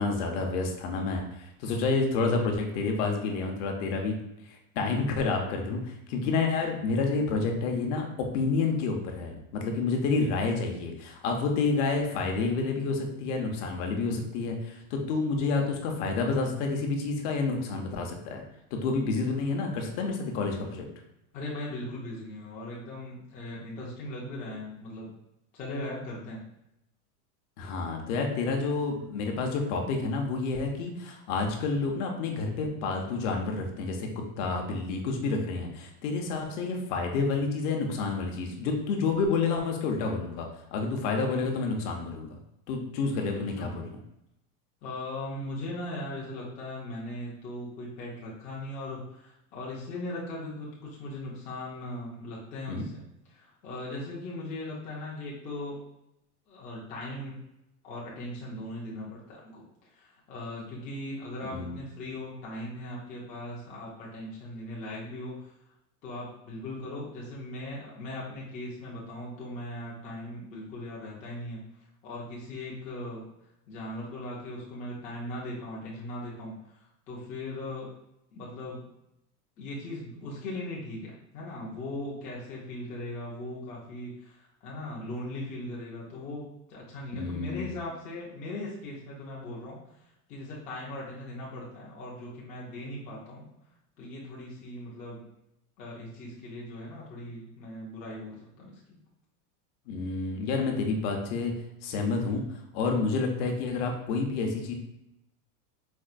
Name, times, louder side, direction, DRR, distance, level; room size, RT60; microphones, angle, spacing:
voice 1, 0.0-4.2 4.5-18.4 18.7-20.9 27.6-42.3 42.7-44.0 52.7-52.9 61.4-61.8 87.1-87.8 99.9-101.5 101.8-104.7, left 4 dB, 55° left, 2 dB, 0.7 m, -29 dB
voice 2, 21.3-25.1 25.5-26.4 43.3-43.7 44.8-53.0 53.3-55.8 56.5-57.4 57.8-65.5 66.0-71.6 72.0-73.3 73.7-77.9 78.3-78.9 79.6-93.5 94.0-95.3 95.8-99.0, left 1 dB, 20° left, -5 dB, 0.4 m, -39 dB
4.3 x 2.0 x 2.4 m, 0.84 s
supercardioid pair, 150°, 44 cm